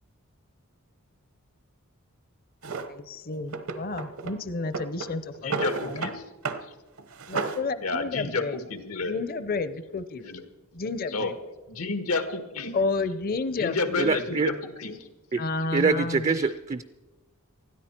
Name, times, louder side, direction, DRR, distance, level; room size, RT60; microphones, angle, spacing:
Drawer open or close, 2.6-2.9 3.5-4.4 4.7-6.2 6.4-6.7 7.0-7.7, right 4 dB, 75° right, 1.0 m, -32 dB
voice 1, 2.9-5.5 5.9-6.1 7.3-8.6 9.0-10.3 10.7-11.3 12.7-14.7 15.4-16.4, left 3 dB, 45° left, 14 dB, 0.6 m, -31 dB
voice 2, 5.4-6.2 7.8-9.2 10.2-10.4 11.1-11.3 11.7-12.8 13.6-15.1 16.4-16.5, left 3 dB, 90° left, 8 dB, 1.6 m, -31 dB
voice 3, 14.0-14.5 15.3-15.4 15.7-16.8, right 4 dB, 30° right, 12 dB, 0.4 m, -24 dB
20.0 x 13.0 x 4.4 m, 1.2 s
head